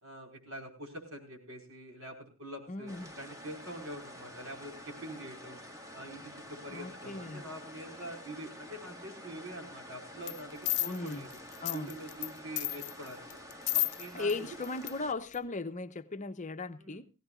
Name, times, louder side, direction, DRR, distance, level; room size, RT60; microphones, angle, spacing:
voice 1, 0.0-5.6 5.9-11.3 11.7-13.2 13.7-14.3 16.8-17.0, right 1 dB, 65° right, 5.2 m, -45 dB
voice 2, 2.7-3.1 6.7-7.4 10.9-11.3 11.6-11.9 14.1-17.1, left 3 dB, 35° left, 0.9 m, -37 dB
sound 1, 2.9-15.1, left 1 dB, 15° right, 2.0 m, -49 dB
sound 2, 10.3-10.4 10.7-12.3 12.6-14.3 14.6-14.9 15.3-15.4, left 19 dB, 85° left, 0.7 m, -32 dB
20.0 x 16.5 x 2.5 m
head